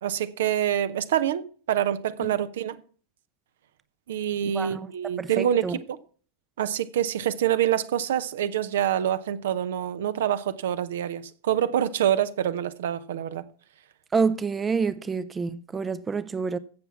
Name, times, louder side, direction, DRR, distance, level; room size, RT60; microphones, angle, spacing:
voice 1, 0.0-2.8 4.1-6.0 6.6-13.5, right 10 dB, 60° right, 0.8 m, -26 dB
voice 2, 4.5-4.9 5.2-5.8 14.1-16.6, right 5 dB, 15° right, 0.6 m, -27 dB
15.5 x 7.0 x 5.8 m
figure-of-eight pair, 90°, 0 cm